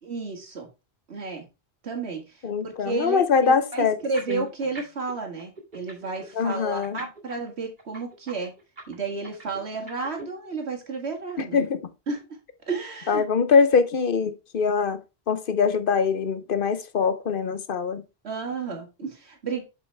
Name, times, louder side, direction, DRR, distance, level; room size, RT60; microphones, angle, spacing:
voice 1, 0.0-0.7 1.1-1.5 1.8-8.5 8.9-11.7 12.1-12.2 12.7-13.2 18.2-19.6, right 4 dB, 80° right, 2.1 m, -32 dB
voice 2, 2.4-4.0 4.3-4.4 6.4-7.0 11.4-11.8 13.1-15.0 15.3-18.0, left 5 dB, 60° left, 0.9 m, -23 dB
sound 1, 4.0-5.1 5.4-10.2, right 2 dB, 50° right, 2.2 m, -42 dB
8.0 x 5.5 x 3.3 m
omnidirectional pair, 1.1 m